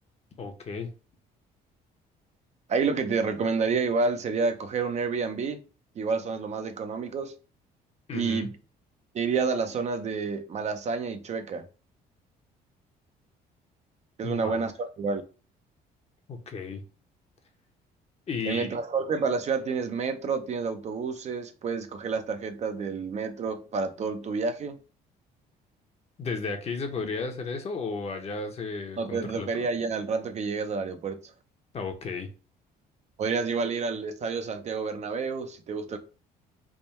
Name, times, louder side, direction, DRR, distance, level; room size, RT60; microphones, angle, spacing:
voice 1, 0.4-0.9 8.1-8.5 14.2-14.6 16.3-16.8 18.3-18.8 26.2-29.7 31.7-32.3, left 4 dB, 40° left, 0.8 m, -34 dB
voice 2, 2.7-5.6 6.0-7.3 8.1-8.5 9.1-11.6 14.2-15.2 18.5-24.8 29.0-31.2 33.2-36.0, right 4 dB, 40° right, 0.5 m, -29 dB
3.5 x 2.2 x 4.2 m
cardioid pair, 110°, 17 cm